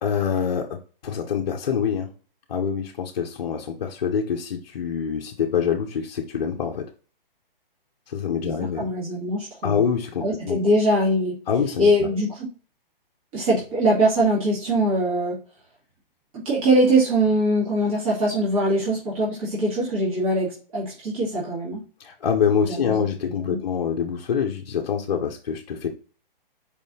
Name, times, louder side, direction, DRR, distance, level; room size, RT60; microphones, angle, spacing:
voice 1, 0.0-2.1 2.5-6.8 8.1-8.9 9.6-10.6 11.5-12.1 22.0-25.9, left 7 dB, 45° left, 0 dB, 0.6 m, -25 dB
voice 2, 8.4-9.8 10.2-11.4 11.8-12.5 13.3-15.4 16.3-21.8 22.6-23.6, right 1 dB, 35° right, -6 dB, 2.0 m, -22 dB
4.7 x 3.4 x 2.7 m, 0.37 s
hypercardioid pair, 165°, 29 cm